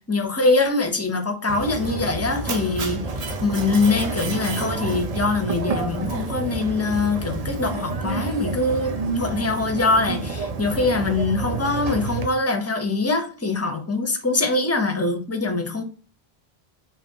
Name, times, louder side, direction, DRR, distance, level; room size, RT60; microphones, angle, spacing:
voice 1, 0.1-15.8, left 3 dB, 20° left, 0.5 m, -23 dB
Mechanisms, 1.5-12.3, right 3 dB, 45° right, 0.5 m, -29 dB
5.4 x 2.6 x 2.7 m
omnidirectional pair, 1.1 m